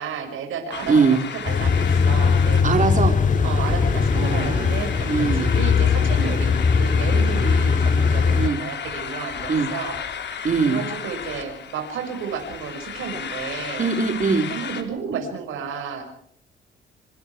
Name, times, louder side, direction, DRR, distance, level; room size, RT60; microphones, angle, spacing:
voice 1, 0.0-0.9 1.3-2.6 3.4-13.9 14.5-16.0, right 6 dB, 80° right, 4 dB, 6.1 m, -32 dB
sound 1, 0.7-14.8, left 7 dB, 60° left, 4.1 m, -34 dB
sound 2, 1.5-8.5, left 5 dB, 40° left, 2.3 m, -20 dB
voice 2, 2.6-3.2 4.1-4.7 5.1-5.5 8.4-8.6 9.5-9.7 10.4-10.8 13.8-14.5, right 5 dB, 40° right, 4 dB, 4.4 m, -21 dB
26.5 x 25.5 x 4.8 m, 0.64 s
cardioid pair, 90°, 20 cm